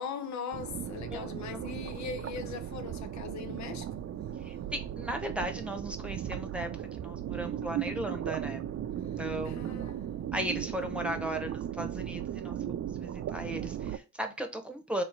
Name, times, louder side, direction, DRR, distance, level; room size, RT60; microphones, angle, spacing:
voice 1, 0.0-3.9 9.4-10.1 10.9-11.2, left 6 dB, 65° left, 0.6 m, -40 dB
sound 1, 0.5-14.0, right 10 dB, 50° right, 0.6 m, -37 dB
voice 2, 1.1-1.7 4.4-6.7 7.0-8.7 9.2-9.7 10.3-15.0, right 1 dB, 5° right, 1.0 m, -37 dB
3.2 x 3.1 x 4.4 m
cardioid pair, 90°, 30 cm